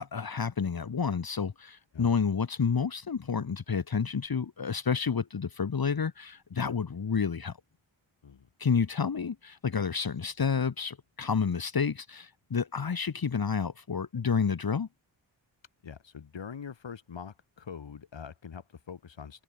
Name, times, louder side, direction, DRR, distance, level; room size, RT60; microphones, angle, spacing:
voice 1, 0.0-7.6 8.6-14.9, left 6 dB, 50° left, 1.9 m, -30 dB
voice 2, 15.8-19.4, left 7 dB, 70° left, 4.0 m, -44 dB
cardioid pair, 50°, 45 cm